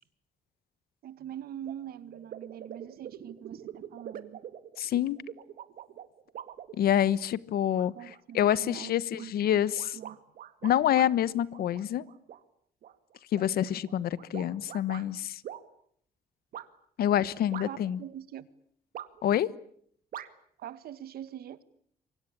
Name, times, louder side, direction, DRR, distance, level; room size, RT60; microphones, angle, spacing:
voice 1, 1.0-4.4 7.9-9.6 9.9-10.2 17.6-18.5 20.6-21.6, right 10 dB, 85° right, 1.9 m, -43 dB
sound 1, 1.6-1.7 2.1-7.2 7.7-8.2 8.5-8.6 9.1-11.1 11.5-12.4 12.8-15.1 15.4-15.6 16.5-16.7 17.5-18.0 18.9-19.4 20.1-20.3, right 10 dB, 70° right, 2.1 m, -44 dB
voice 2, 4.8-5.2 6.8-7.9 8.3-10.0 10.6-12.0 13.3-15.4 17.0-18.0 19.2-19.5, left 11 dB, 80° left, 1.3 m, -27 dB
28.0 x 24.5 x 8.6 m
cardioid pair, 165°, 15 cm